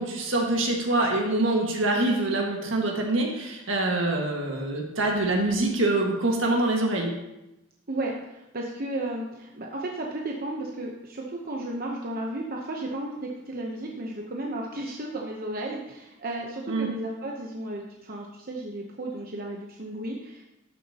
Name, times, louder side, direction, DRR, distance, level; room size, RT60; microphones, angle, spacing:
voice 1, 0.0-7.1 16.7-16.9, right 2 dB, 75° right, 1 dB, 1.7 m, -25 dB
voice 2, 7.9-20.5, right 1 dB, 45° right, -1 dB, 0.9 m, -34 dB
12.5 x 7.1 x 2.9 m, 0.93 s
head